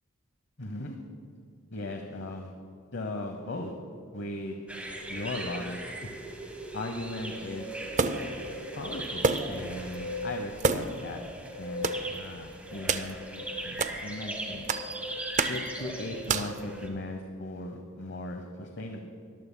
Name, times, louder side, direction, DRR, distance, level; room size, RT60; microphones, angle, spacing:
voice 1, 0.6-1.0 1.7-2.5 2.9-3.7 4.1-4.6 5.1-5.8 6.7-7.7 8.8-11.2 11.6-14.7 15.5-19.0, left 2 dB, 55° left, 4 dB, 0.9 m, -38 dB
sound 1, 4.7-16.9, right 1 dB, 5° right, 1.2 m, -38 dB
sound 2, 8.0-8.4 9.2-9.6 9.9-10.0 10.6-11.1 11.8-12.0 12.9-13.1 13.8-14.0 14.7-14.9 15.4-15.7 16.3-16.6, right 4 dB, 35° right, 0.5 m, -28 dB
21.0 x 14.0 x 2.2 m, 2.3 s
head